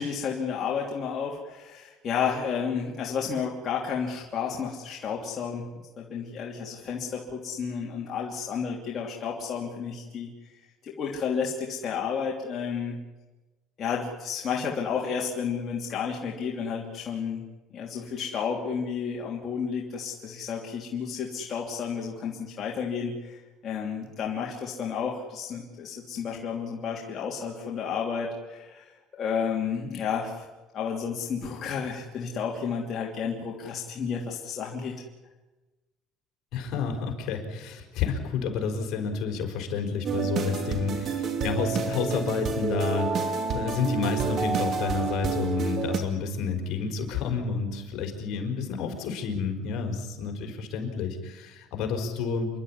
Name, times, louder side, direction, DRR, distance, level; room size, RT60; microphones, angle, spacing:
voice 1, 0.0-5.7 6.0-10.3 10.8-13.0 13.8-17.4 17.7-23.4 23.6-30.5 30.7-35.0, left 6 dB, 40° left, -2 dB, 3.1 m, -31 dB
voice 2, 36.5-52.5, left 5 dB, 60° left, 3 dB, 4.8 m, -30 dB
sound 1, 40.0-46.0, right 5 dB, 45° right, 2.7 m, -29 dB
28.5 x 11.5 x 9.9 m, 1.1 s
cardioid pair, 120°, 0 cm